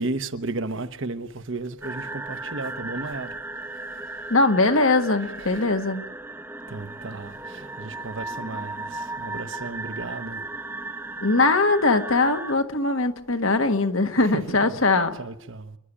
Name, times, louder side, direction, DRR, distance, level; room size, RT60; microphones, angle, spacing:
voice 1, 0.0-3.4 3.7-4.3 5.1-5.6 6.7-10.4 14.2-14.8 15.1-15.8, right 3 dB, 60° right, 1.1 m, -34 dB
sound 1, 1.8-12.5, right 2 dB, 10° right, 0.8 m, -36 dB
voice 2, 4.3-6.0 11.2-15.1, left 3 dB, 70° left, 1.6 m, -21 dB
28.0 x 11.5 x 9.9 m
head